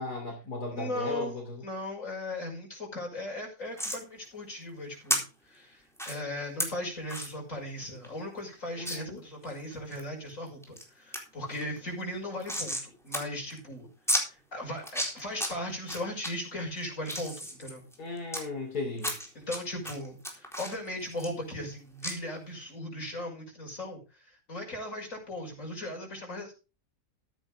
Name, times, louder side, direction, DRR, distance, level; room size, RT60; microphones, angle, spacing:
voice 1, 0.0-1.6 8.8-9.2 18.0-19.2, left 2 dB, 80° left, 3.6 m, -36 dB
voice 2, 0.7-13.9 14.2-17.8 19.3-26.5, left 1 dB, 55° left, 6.2 m, -38 dB
sound 1, 3.8-4.0 5.1-5.2 6.0-6.1 6.6-6.7 7.1-7.3 7.7-7.8 8.0-8.1 8.9-9.0 9.5-10.0 10.5-10.8 11.1-11.2 11.5-12.9 13.1-13.2 13.5-13.6 14.1-14.2 14.8-15.5 15.9-16.3 16.8-18.4 19.0-19.6 19.8-21.7 22.0-22.1, equal, ahead, 4.0 m, -32 dB
14.5 x 10.0 x 3.6 m
omnidirectional pair, 1.6 m